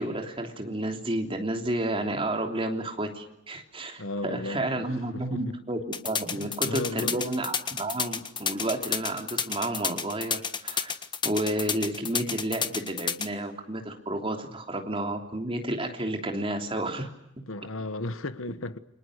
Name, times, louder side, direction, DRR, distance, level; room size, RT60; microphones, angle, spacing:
voice 1, 0.0-5.8 6.0-10.9 11.2-17.1, right 1 dB, 25° right, 3.2 m, -31 dB
voice 2, 4.0-4.6 5.1-5.5 6.3-7.2 17.5-18.8, left 2 dB, 75° left, 1.3 m, -34 dB
sound 1, 5.9-13.3, left 6 dB, 20° left, 1.4 m, -30 dB
29.0 x 25.5 x 6.6 m
head